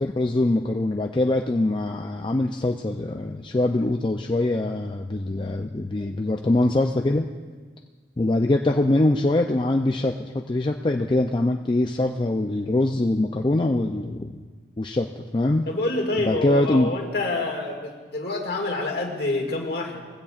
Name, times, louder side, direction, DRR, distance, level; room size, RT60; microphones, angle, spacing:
voice 1, 0.0-7.3 8.2-14.4 14.8-15.7 16.3-16.9, left 2 dB, 25° left, 3 dB, 0.4 m, -23 dB
voice 2, 15.7-20.0, left 2 dB, 55° left, 1 dB, 2.1 m, -27 dB
21.0 x 16.0 x 2.5 m, 1.5 s
head